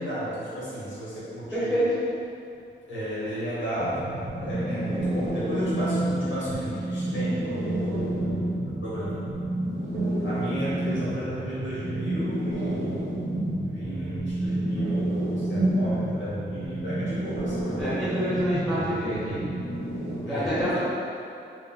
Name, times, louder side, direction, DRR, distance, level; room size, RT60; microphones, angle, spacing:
voice 1, 0.0-1.8 2.9-9.3 10.2-13.1 13.7-18.0 20.2-20.8, equal, 70° left, -10 dB, 1.5 m, -33 dB
voice 2, 1.5-1.8 17.8-19.4 20.1-20.8, equal, ahead, -12 dB, 1.5 m, -28 dB
sound 1, 3.8-20.2, right 1 dB, 80° right, 1.0 m, -29 dB
3.4 x 2.6 x 3.7 m, 2.7 s
wide cardioid pair, 120°, 20 cm